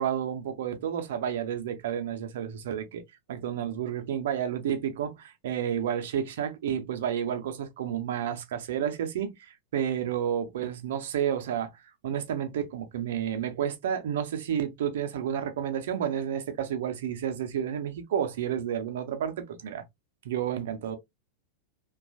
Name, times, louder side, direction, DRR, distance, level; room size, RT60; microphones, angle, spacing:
voice 1, 0.0-3.0 3.3-11.7 12.0-19.8 20.2-21.0, right 9 dB, 55° right, 0.6 m, -31 dB
2.9 x 2.3 x 2.5 m
figure-of-eight pair, 90°, 0 cm